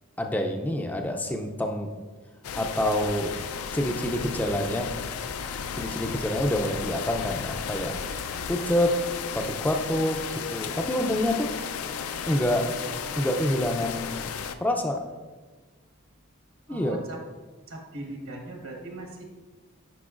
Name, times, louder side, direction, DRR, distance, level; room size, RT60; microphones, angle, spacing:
voice 1, 0.2-1.9 2.5-3.3 3.7-4.9 5.7-7.9 8.5-8.9 9.3-11.5 12.3-12.6 13.2-14.3 14.6-15.0 16.7-17.0, left 1 dB, 10° left, 4 dB, 0.4 m, -27 dB
sound 1, 2.4-14.6, left 7 dB, 75° left, 0.4 m, -34 dB
voice 2, 6.0-6.4 16.7-17.2 17.7-19.2, right 2 dB, 70° right, 1 dB, 1.3 m, -39 dB
10.0 x 5.1 x 2.4 m, 1.3 s
head